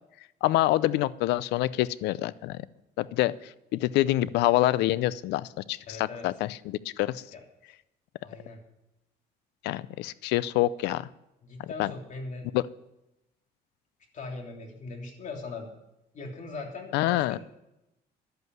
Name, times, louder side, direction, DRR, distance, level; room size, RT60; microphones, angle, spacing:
voice 1, 0.4-2.6 3.0-7.2 9.6-11.1 11.6-11.9 12.5-12.6 16.9-17.4, left 16 dB, 90° left, 18 dB, 0.5 m, -26 dB
voice 2, 5.9-6.3 7.3-7.4 8.2-8.6 11.4-12.5 14.1-15.7 16.1-17.4, left 3 dB, 50° left, 1 dB, 3.1 m, -40 dB
11.5 x 8.1 x 9.3 m, 0.89 s
cardioid pair, 110°, 17 cm